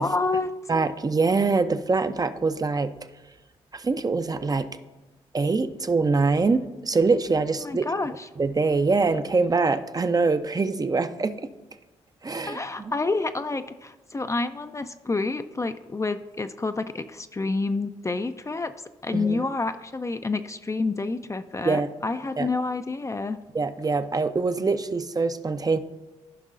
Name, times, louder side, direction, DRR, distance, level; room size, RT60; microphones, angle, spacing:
voice 1, 0.0-0.5 7.6-8.3 12.5-18.7 19.0-23.4, left 3 dB, 25° left, 9 dB, 0.5 m, -28 dB
voice 2, 0.7-2.9 3.7-4.7 5.3-7.8 8.4-11.5 12.2-12.6 19.1-19.5 21.6-21.9 22.4-22.5 23.5-25.8, right 4 dB, 30° right, 10 dB, 0.6 m, -24 dB
14.5 x 5.4 x 2.5 m, 1.2 s
hypercardioid pair, 45°, 13 cm